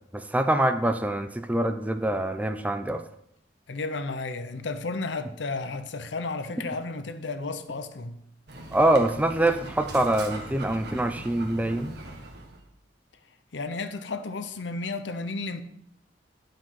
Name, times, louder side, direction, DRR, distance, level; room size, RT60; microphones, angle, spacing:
voice 1, 0.1-3.0 8.7-12.0, right 1 dB, 10° right, 0.5 m, -25 dB
voice 2, 3.7-8.2 13.5-15.6, left 3 dB, 70° left, 0.8 m, -33 dB
Dog, 8.5-12.6, right 2 dB, 60° right, 1.5 m, -40 dB
9.6 x 5.2 x 5.8 m
head